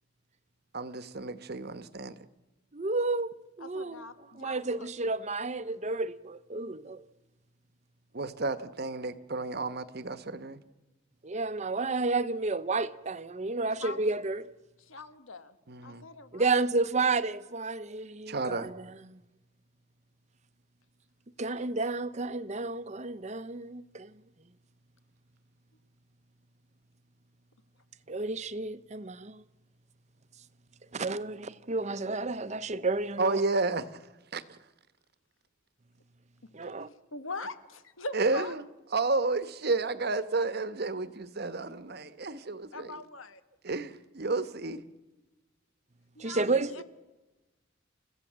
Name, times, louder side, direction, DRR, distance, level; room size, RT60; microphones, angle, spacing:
voice 1, 0.7-2.2 8.1-10.6 15.7-16.0 18.3-18.7 33.2-33.9 34.3-34.4 38.1-38.7 38.9-43.0 43.6-44.8 46.4-46.6, right 3 dB, 50° right, 1.1 m, -31 dB
voice 2, 2.7-3.3 3.6-4.0 4.4-7.0 11.2-14.4 16.3-19.2 21.4-24.1 28.1-29.4 30.9-33.4 36.5-36.9 46.2-46.7, right 3 dB, 35° right, 0.8 m, -31 dB
voice 3, 3.6-5.2 13.8-14.0 14.8-15.6 15.8-16.6 21.4-21.6 37.1-38.5 42.7-43.4 46.1-46.8, left 3 dB, 85° left, 1.6 m, -42 dB
29.5 x 15.5 x 7.5 m
head